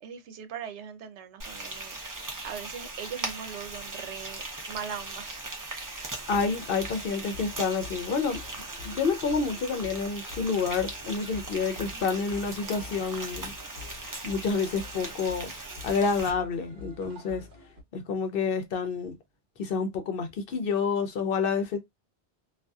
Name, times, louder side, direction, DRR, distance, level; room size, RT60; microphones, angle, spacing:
voice 1, 0.0-5.4 11.9-12.0, right 8 dB, 85° right, 0.9 m, -40 dB
Frying (food), 1.4-16.3, right 2 dB, 30° right, 0.4 m, -39 dB
sound 1, 6.1-17.8, left 3 dB, 50° right, 1.0 m, -47 dB
voice 2, 6.3-8.4 8.8-13.5 14.2-15.5 15.8-17.4 17.9-19.1 19.6-21.8, left 5 dB, 60° left, 0.7 m, -28 dB
2.5 x 2.3 x 2.2 m
omnidirectional pair, 1.1 m